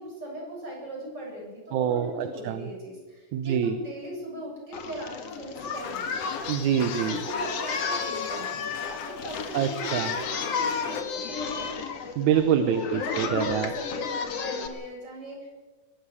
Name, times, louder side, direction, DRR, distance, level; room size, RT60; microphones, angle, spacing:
voice 1, 0.0-6.1 6.9-11.8 12.9-15.5, right 1 dB, 30° right, -2 dB, 8.6 m, -39 dB
voice 2, 1.7-2.7 3.3-3.8 6.5-7.2 9.5-10.1 12.2-13.7, right 8 dB, 70° right, 10 dB, 2.2 m, -25 dB
Singing, 4.7-14.7, left 5 dB, 55° left, 2.7 m, -32 dB
sound 1, 5.7-11.0, left 8 dB, 75° left, 2.8 m, -40 dB
21.5 x 13.5 x 9.8 m, 1.3 s
omnidirectional pair, 3.7 m